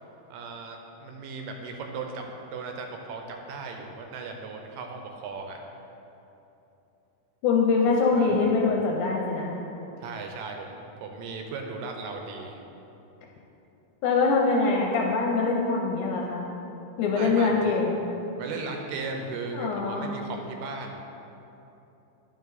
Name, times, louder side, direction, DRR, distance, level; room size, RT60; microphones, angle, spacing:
voice 1, 0.3-5.6 8.1-8.5 10.0-12.6 17.2-17.8 18.4-20.9, right 4 dB, 80° right, 3 dB, 2.2 m, -37 dB
voice 2, 7.4-9.6 14.0-16.4 17.0-18.0 19.5-20.1, left 4 dB, 80° left, -1 dB, 1.9 m, -23 dB
10.5 x 5.1 x 4.0 m, 2.9 s
omnidirectional pair, 4.1 m